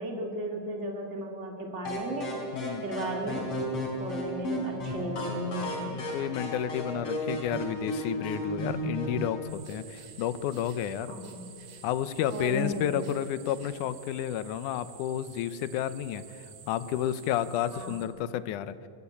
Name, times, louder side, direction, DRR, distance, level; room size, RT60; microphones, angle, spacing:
voice 1, 0.0-2.3 2.8-3.4 4.0-6.0 11.1-11.4 12.3-13.0 17.7-18.0, right 1 dB, 25° right, 2 dB, 2.5 m, -35 dB
sound 1, 1.9-9.4, equal, 50° left, 4.9 m, -34 dB
voice 2, 2.5-2.9 5.9-11.1 11.8-16.2 16.7-18.8, left 10 dB, 80° left, 14 dB, 2.2 m, -31 dB
sound 2, 9.5-18.1, right 7 dB, 75° right, 3.4 m, -50 dB
21.0 x 16.0 x 8.6 m, 2.6 s
omnidirectional pair, 3.6 m